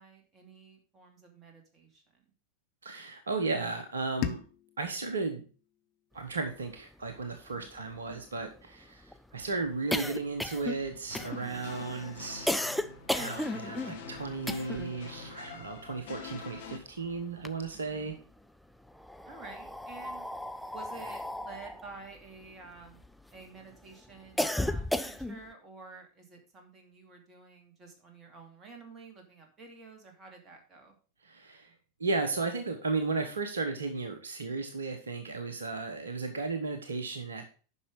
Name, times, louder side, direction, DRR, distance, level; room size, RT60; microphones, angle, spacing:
voice 1, 0.0-2.2 7.5-7.7 17.7-18.2 19.3-20.2 20.7-23.0 23.3-31.0, right 4 dB, 25° right, 3 dB, 2.6 m, -50 dB
voice 2, 2.8-4.4 4.8-5.5 6.1-12.6 13.1-18.1 31.2-31.7 32.0-37.5, right 3 dB, 70° right, 7 dB, 1.1 m, -35 dB
sound 1, 4.2-7.1, left 13 dB, 40° left, 0.8 m, -41 dB
sound 2, 6.8-6.9 7.1-7.2 7.5-15.0 15.3-16.9 17.2-18.1 18.9-23.4 23.8-25.5, left 1 dB, ahead, 0.5 m, -35 dB
sound 3, 11.1-16.8, left 6 dB, 55° left, 2.0 m, -45 dB
10.0 x 5.8 x 4.7 m, 0.37 s
figure-of-eight pair, 90°, 0 cm